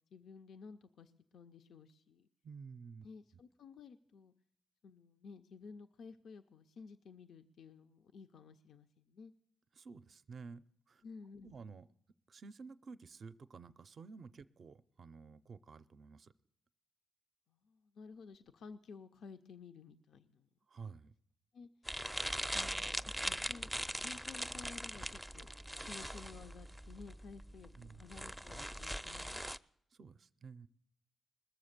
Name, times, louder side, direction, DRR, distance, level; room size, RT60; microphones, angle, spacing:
voice 1, 0.1-2.3 3.0-4.3 4.8-9.3 11.0-11.6 17.5-20.5 21.5-21.7 22.4-23.7 24.0-25.5 25.9-29.3, left 5 dB, 75° left, 8 dB, 0.4 m, -54 dB
voice 2, 2.4-3.1 9.7-11.0 11.4-11.9 12.3-16.3 20.7-21.1 27.8-28.0 29.9-30.7, right 5 dB, 60° right, 13 dB, 0.4 m, -52 dB
sound 1, 21.8-29.6, equal, ahead, 0.4 m, -41 dB
20.0 x 7.0 x 6.6 m, 0.72 s
supercardioid pair, 45°, 0 cm